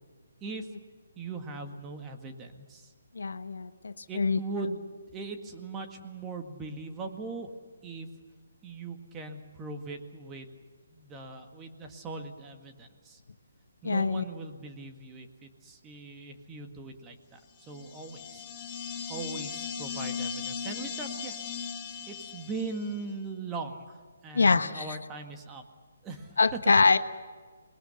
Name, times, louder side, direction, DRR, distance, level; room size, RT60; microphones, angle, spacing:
voice 1, 0.4-0.7 1.2-2.9 4.1-7.5 7.8-8.1 8.6-10.6 10.9-13.2 13.8-17.4 17.7-18.4 19.1-21.4 22.1-25.6 26.0-26.6, right 3 dB, 15° right, 4 dB, 1.9 m, -40 dB
voice 2, 3.1-4.4 13.8-14.2 24.3-24.8 26.4-27.0, left 4 dB, 80° left, 11 dB, 1.1 m, -24 dB
sound 1, 17.6-23.0, left 7 dB, 20° left, 2.3 m, -38 dB
26.0 x 20.5 x 6.7 m, 1.5 s
hypercardioid pair, 155°, 0 cm